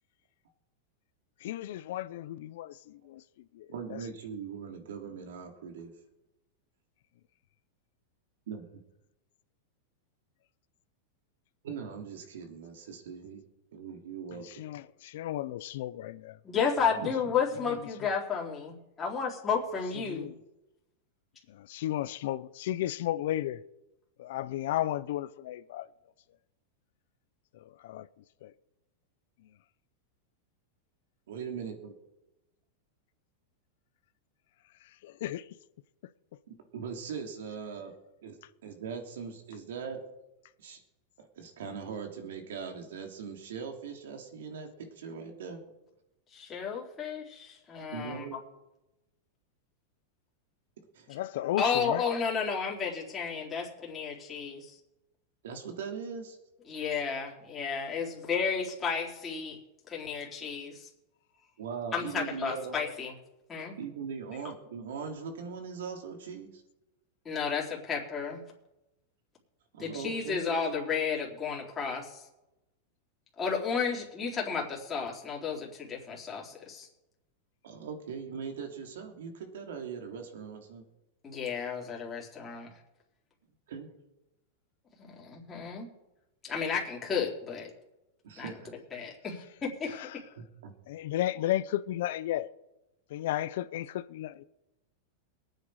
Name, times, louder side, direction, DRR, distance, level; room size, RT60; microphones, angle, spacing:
voice 1, 1.4-3.2 3.5-4.0 14.4-16.4 17.7-17.8 20.1-20.3 21.5-23.6 24.2-25.9 27.5-28.1 28.4-28.5 35.0-35.5 51.1-52.0 89.9-90.2 90.9-92.5 93.1-94.4, left 13 dB, 65° left, 0.6 m, -34 dB
voice 2, 3.7-5.9 8.5-8.7 11.6-13.4 13.7-14.6 17.0-17.3 31.3-31.9 36.5-37.9 38.2-38.4 38.6-40.0 40.6-40.8 41.2-45.6 47.9-48.4 50.9-51.1 55.4-56.4 61.6-62.8 63.8-66.6 69.7-70.4 77.6-80.8 83.7-83.9 88.2-88.8 90.4-90.7, right 6 dB, 85° right, 3.1 m, -40 dB
voice 3, 16.4-20.3 46.3-48.2 51.6-54.8 56.7-59.6 59.9-60.9 61.9-63.1 63.5-63.8 67.3-68.4 69.8-72.2 73.4-76.9 81.2-82.7 85.0-85.9 86.4-87.7 88.4-88.5 88.9-90.0, left 6 dB, 15° left, 3.6 m, -32 dB
22.5 x 9.0 x 4.9 m
supercardioid pair, 150°, 0 cm